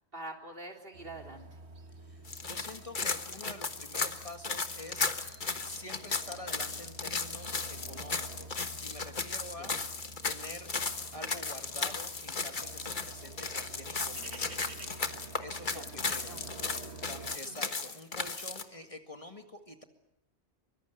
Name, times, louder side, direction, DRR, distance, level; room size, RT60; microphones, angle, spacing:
voice 1, 0.1-1.4 9.6-9.7 15.7-16.5 17.4-17.6, right 2 dB, 55° right, 2 dB, 3.7 m, -45 dB
sound 1, 0.9-17.4, right 3 dB, 75° right, 2.0 m, -49 dB
voice 2, 2.0-5.1 5.6-10.0 10.2-10.7 11.1-14.8 15.4-16.4 17.1-19.8, left 1 dB, 30° left, 5 dB, 2.0 m, -47 dB
sound 2, 2.2-18.6, left 4 dB, 45° left, 1.5 m, -35 dB
24.0 x 24.0 x 8.1 m, 0.80 s
omnidirectional pair, 1.1 m